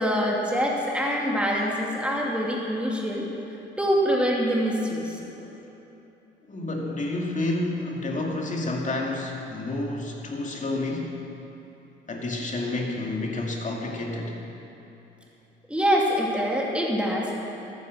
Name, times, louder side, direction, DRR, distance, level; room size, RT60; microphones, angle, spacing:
voice 1, 0.0-3.3 3.8-5.2 15.7-17.4, equal, 5° right, -2 dB, 2.6 m, -25 dB
voice 2, 6.5-11.2 12.1-14.4, left 2 dB, 40° left, 0 dB, 2.3 m, -30 dB
13.0 x 10.5 x 6.5 m, 3.0 s
cardioid pair, 90°, 20 cm